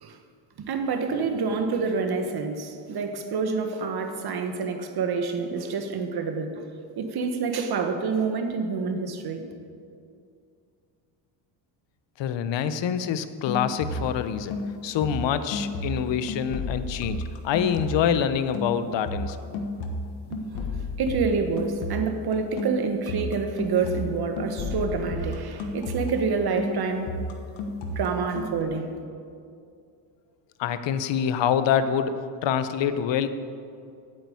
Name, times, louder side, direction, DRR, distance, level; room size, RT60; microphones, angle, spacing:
voice 1, 0.6-6.6 7.0-9.4 20.3-20.4 21.0-27.1 27.9-28.9, right 5 dB, 50° right, 6 dB, 1.5 m, -27 dB
voice 2, 12.2-14.5 14.8-19.6 30.6-33.3, left 8 dB, 65° left, 11 dB, 0.9 m, -26 dB
sound 1, 13.5-14.3 14.5-18.2 18.5-26.3 26.6-28.6, left 2 dB, 85° left, 1.3 m, -33 dB
8.9 x 7.9 x 8.6 m, 2.4 s
cardioid pair, 95°, 47 cm